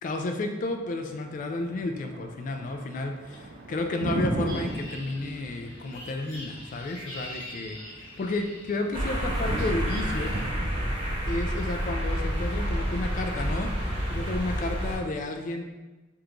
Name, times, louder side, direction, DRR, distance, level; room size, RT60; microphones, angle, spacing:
voice 1, 0.0-7.8 8.2-10.3 11.2-13.7 14.1-15.6, left 2 dB, 40° left, 5 dB, 0.3 m, -32 dB
Thunder, 0.6-14.6, right 1 dB, 50° right, 0.4 m, -38 dB
sound 1, 1.6-10.5, equal, 80° left, 1.3 m, -45 dB
sound 2, 8.9-15.0, equal, 25° right, 0.9 m, -29 dB
3.6 x 2.4 x 2.9 m, 1.2 s
head